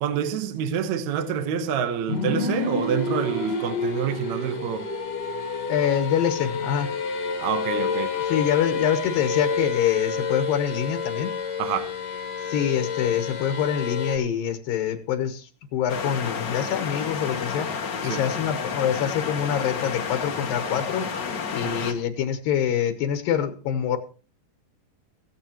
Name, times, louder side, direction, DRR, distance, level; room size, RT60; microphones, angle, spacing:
voice 1, 0.0-4.9 7.4-8.2 11.6-11.9 18.0-18.2, right 8 dB, 65° right, 2.1 m, -27 dB
sound 1, 2.1-14.2, left 4 dB, 40° left, 1.7 m, -29 dB
voice 2, 5.7-6.9 8.3-11.3 12.5-17.7 18.0-21.0 21.5-24.0, left 9 dB, 80° left, 2.8 m, -25 dB
sound 2, 15.9-21.9, left 6 dB, 60° left, 1.2 m, -30 dB
16.0 x 15.0 x 3.0 m
omnidirectional pair, 4.0 m